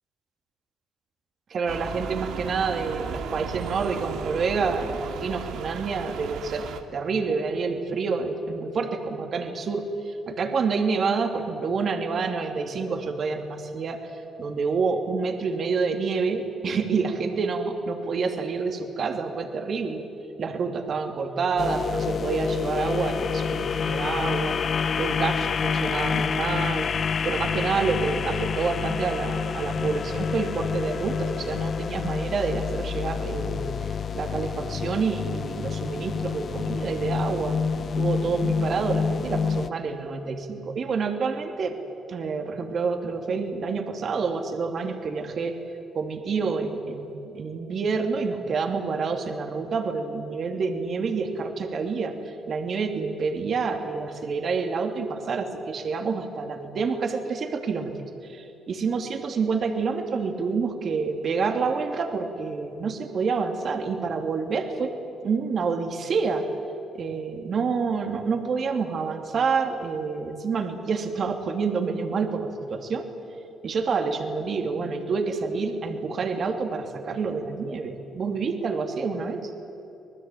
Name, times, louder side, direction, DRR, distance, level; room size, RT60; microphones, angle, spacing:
voice 1, 1.5-6.6 6.9-14.1 14.4-20.0 20.4-24.6 25.0-26.9 27.2-33.7 34.1-37.6 38.0-41.8 42.1-45.5 45.9-57.9 58.2-64.9 65.2-66.5 66.9-73.1 73.6-79.5, right 4 dB, 50° right, 5 dB, 2.7 m, -28 dB
sound 1, 1.7-6.8, right 6 dB, 85° right, 2.0 m, -36 dB
sound 2, 21.6-39.7, left 6 dB, 45° left, 0.7 m, -28 dB
25.5 x 19.5 x 9.2 m, 2.8 s
cardioid pair, 105°, 0 cm